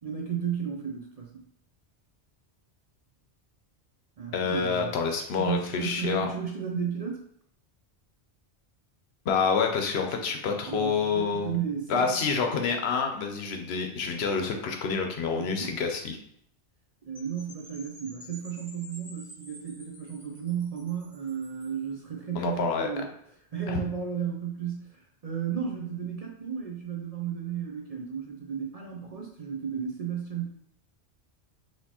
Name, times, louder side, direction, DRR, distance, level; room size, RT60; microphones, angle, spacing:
voice 1, 0.0-1.4 4.2-4.9 5.4-7.2 10.7-12.2 15.3-15.7 17.0-23.1 23.5-30.5, right 7 dB, 50° right, 0 dB, 0.5 m, -34 dB
voice 2, 4.3-6.3 9.3-11.6 11.9-16.2 22.3-23.0 23.7-23.8, left 5 dB, 75° left, 4 dB, 0.9 m, -28 dB
Percussion / Wind chime, 17.1-21.8, equal, 25° right, 1.5 m, -50 dB
4.2 x 2.9 x 2.8 m, 0.68 s
omnidirectional pair, 1.1 m